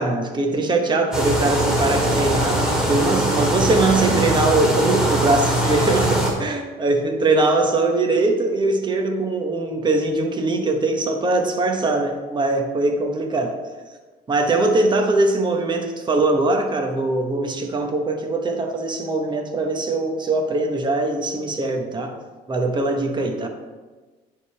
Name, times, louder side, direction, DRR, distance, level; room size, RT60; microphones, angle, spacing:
voice 1, 0.0-13.5 14.3-22.1 22.5-23.5, right 2 dB, 25° right, 3 dB, 1.1 m, -21 dB
sound 1, 1.1-6.3, right 1 dB, 5° right, 2.1 m, -21 dB
9.3 x 3.7 x 5.7 m, 1.3 s
cardioid pair, 110°, 17 cm